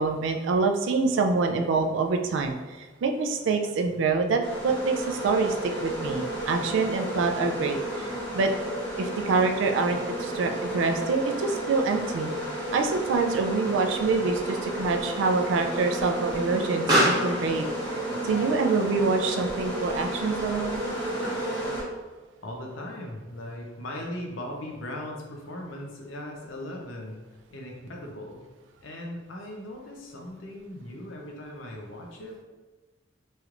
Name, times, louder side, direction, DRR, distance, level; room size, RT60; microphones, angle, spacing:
voice 1, 0.0-8.5 9.0-12.3 12.7-17.7 18.2-20.8, right 4 dB, 70° right, 4 dB, 0.3 m, -26 dB
sound 1, 4.4-21.8, right 1 dB, 20° left, 1.2 m, -32 dB
Explosion, 16.5-21.7, right 1 dB, 20° right, 1.0 m, -32 dB
voice 2, 22.4-27.2 27.5-28.4 28.8-32.4, left 1 dB, 85° left, 0 dB, 0.6 m, -38 dB
3.1 x 2.9 x 2.4 m, 1.3 s
head